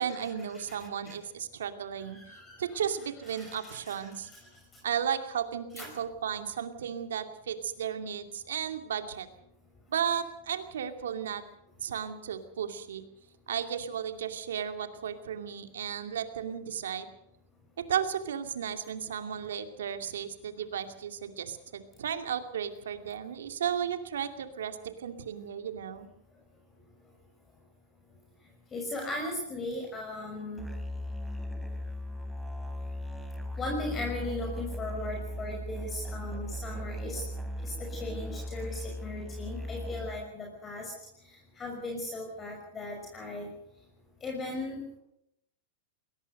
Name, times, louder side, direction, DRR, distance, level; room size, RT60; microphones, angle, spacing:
voice 1, 0.0-2.2 2.6-4.3 4.8-9.3 9.9-11.4 11.8-13.0 13.5-17.1 17.9-26.1, right 8 dB, 85° right, 7 dB, 2.5 m, -34 dB
voice 2, 2.0-2.8 3.3-4.0 5.8-5.9 28.7-30.7 33.5-37.2 37.6-40.9 41.6-43.5 44.2-44.8, left 2 dB, 20° left, 1 dB, 5.9 m, -37 dB
Musical instrument, 30.6-40.4, equal, 5° right, 3.5 m, -38 dB
21.5 x 18.5 x 6.7 m, 0.79 s
hypercardioid pair, 120°, 0 cm